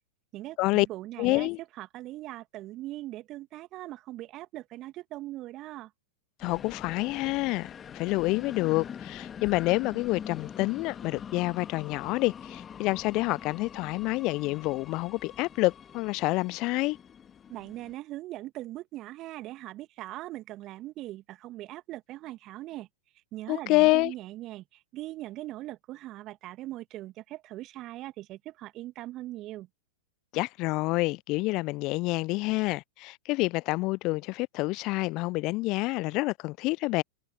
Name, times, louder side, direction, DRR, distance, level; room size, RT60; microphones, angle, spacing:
voice 1, 0.3-5.9 17.5-22.9 23.3-29.7, right 16 dB, 35° right, 2.0 m, -40 dB
voice 2, 1.2-1.6 6.4-17.0 23.5-24.1 30.3-37.0, left 22 dB, 40° left, 0.4 m, -28 dB
sound 1, 6.4-17.9, left 8 dB, 25° left, 2.4 m, -44 dB
figure-of-eight pair, 95°, 0 cm